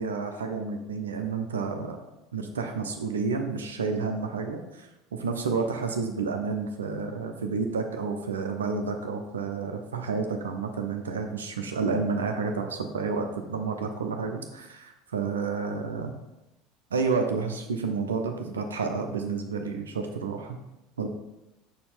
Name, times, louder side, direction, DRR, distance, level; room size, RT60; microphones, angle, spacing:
voice 1, 0.0-2.0 2.3-4.9 5.2-16.1 16.9-20.6 21.0-21.1, right 4 dB, 75° right, 4 dB, 0.6 m, -30 dB
6.0 x 4.3 x 5.5 m, 0.95 s
figure-of-eight pair, 70°, 0 cm